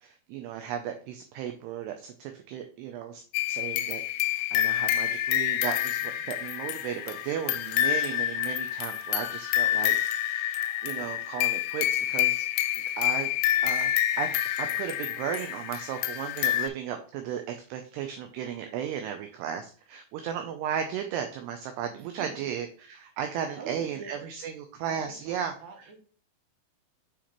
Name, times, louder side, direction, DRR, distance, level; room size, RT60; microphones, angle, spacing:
voice 1, 0.0-12.4 12.8-13.3 13.6-25.5, right 9 dB, 85° right, 5 dB, 2.4 m, -35 dB
sound 1, 3.3-16.7, left 12 dB, 85° left, 2.8 m, -28 dB
voice 2, 22.0-22.5 23.6-24.3 24.9-26.0, right 5 dB, 65° right, 1 dB, 2.0 m, -46 dB
6.9 x 4.9 x 3.0 m, 0.43 s
omnidirectional pair, 5.3 m